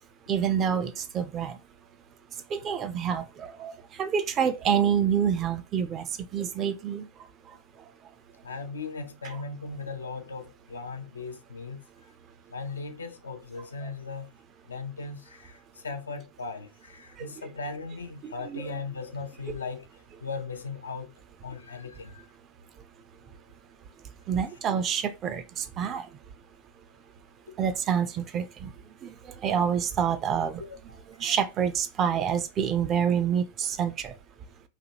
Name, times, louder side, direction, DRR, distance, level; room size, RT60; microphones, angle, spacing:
voice 1, 0.3-1.6 2.5-3.7 4.0-6.1 6.3-7.1 9.3-9.4 17.2-17.3 18.2-18.7 19.5-19.6 24.3-26.1 27.6-28.7 29.0-29.1 29.4-30.6 31.2-34.1, right 8 dB, 30° right, 0.5 m, -27 dB
voice 2, 8.4-11.8 12.5-14.3 14.7-19.9 20.2-21.1 21.4-22.3 27.5-27.6 30.6-30.8, left 4 dB, 75° left, 0.5 m, -38 dB
4.0 x 2.7 x 2.9 m
figure-of-eight pair, 90°, 0 cm